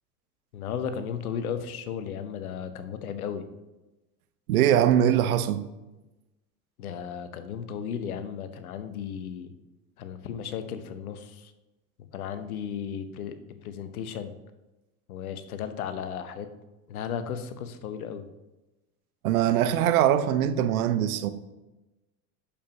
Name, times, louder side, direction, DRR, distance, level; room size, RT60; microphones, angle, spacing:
voice 1, 0.5-3.4 6.8-9.5 10.0-11.3 12.1-13.3 13.6-14.3 15.1-16.5 16.9-18.2, left 8 dB, 80° left, 0.9 m, -34 dB
voice 2, 4.5-5.7 19.2-21.3, right 10 dB, 80° right, 0.7 m, -22 dB
8.6 x 7.0 x 2.9 m
hypercardioid pair, 85°, 43 cm